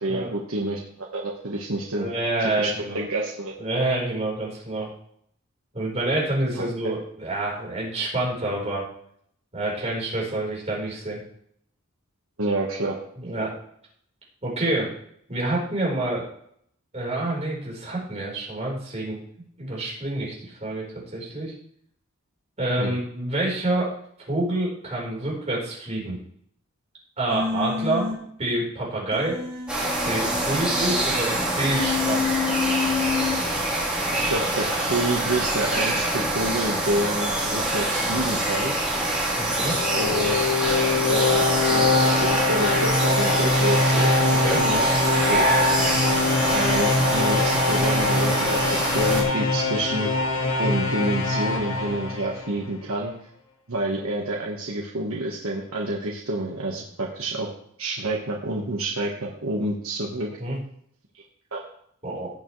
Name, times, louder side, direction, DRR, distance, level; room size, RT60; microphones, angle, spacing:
voice 1, 0.0-2.1 2.6-2.7 2.9-3.5 6.5-6.7 12.4-13.0 13.4-13.5 22.8-22.9 34.1-38.7 40.0-40.4 41.1-44.1 44.6-45.0 45.3-45.5 46.5-50.1 50.6-53.1 53.7-57.5 57.8-60.3 61.5-61.6, right 1 dB, 80° right, -2 dB, 1.4 m, -28 dB
voice 2, 2.0-3.0 3.6-4.9 5.7-8.9 9.5-11.2 13.2-13.5 14.4-14.9 15.3-16.3 16.9-19.2 19.6-21.5 22.6-23.9 24.3-26.2 27.2-28.1 28.4-29.4 30.0-32.4 39.4-39.8 44.2-44.6 60.4-60.6 62.0-62.3, right 2 dB, 30° right, -3 dB, 4.3 m, -27 dB
Human voice, 27.3-28.1 29.1-30.9 31.7-33.3, left 6 dB, 20° left, 3.5 m, -28 dB
sound 1, 29.7-49.2, right 1 dB, 5° right, 3.6 m, -25 dB
sound 2, 39.6-52.7, left 2 dB, 75° left, 1.8 m, -23 dB
17.5 x 7.0 x 3.3 m, 0.67 s
head